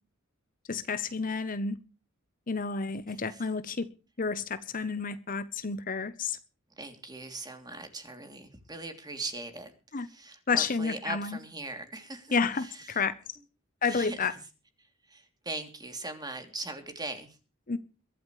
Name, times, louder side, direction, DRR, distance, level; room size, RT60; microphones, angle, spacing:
voice 1, 0.7-1.8 2.5-3.9 4.2-6.4 9.9-10.1 10.5-11.4 12.3-13.1 13.8-14.3 17.7-17.8, left 5 dB, 40° left, 0.9 m, -30 dB
voice 2, 3.1-3.4 6.8-9.7 10.0-13.0 13.8-14.4 15.1-17.4, right 2 dB, 20° right, 3.0 m, -40 dB
22.5 x 13.0 x 3.2 m
head